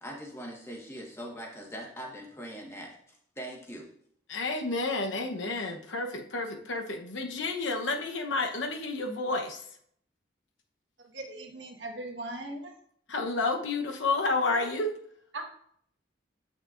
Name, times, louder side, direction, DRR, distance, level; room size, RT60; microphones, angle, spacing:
voice 1, 0.0-3.9, equal, 15° left, -1 dB, 1.4 m, -42 dB
voice 2, 4.3-9.6 13.1-14.9, left 3 dB, 85° left, 3 dB, 1.0 m, -30 dB
voice 3, 11.1-12.7 15.3-15.4, right 2 dB, 75° right, 1 dB, 1.4 m, -39 dB
8.6 x 6.0 x 2.5 m, 0.65 s
head